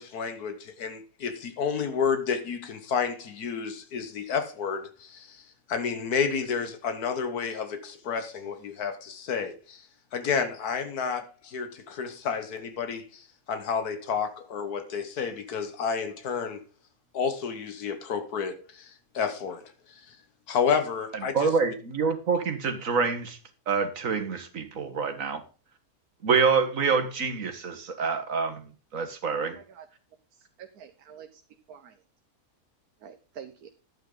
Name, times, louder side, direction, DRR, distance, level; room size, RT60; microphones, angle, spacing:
voice 1, 0.0-5.4 5.7-9.9 10.1-16.6 17.1-19.6 19.9-20.2 20.5-21.5, left 6 dB, 85° left, 1.8 m, -30 dB
voice 2, 21.3-23.4 23.7-25.4 26.2-29.6, right 5 dB, 60° right, 1.9 m, -26 dB
voice 3, 29.4-29.9 30.3-31.4 31.7-32.0 33.0-33.7, right 8 dB, 75° right, 1.4 m, -47 dB
11.5 x 9.1 x 3.9 m
omnidirectional pair, 1.6 m